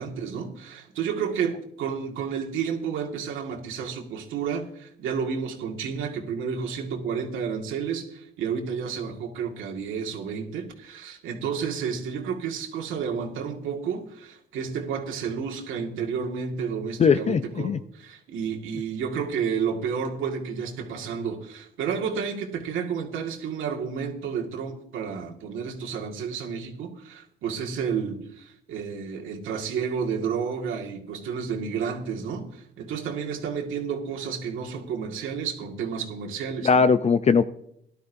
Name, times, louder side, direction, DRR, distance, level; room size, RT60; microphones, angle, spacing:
voice 1, 0.0-36.8, right 6 dB, 85° right, 0 dB, 2.0 m, -31 dB
voice 2, 17.0-17.8 36.6-37.4, left 5 dB, 35° left, 11 dB, 0.5 m, -20 dB
17.0 x 12.0 x 2.7 m, 0.73 s
cardioid pair, 90°, 20 cm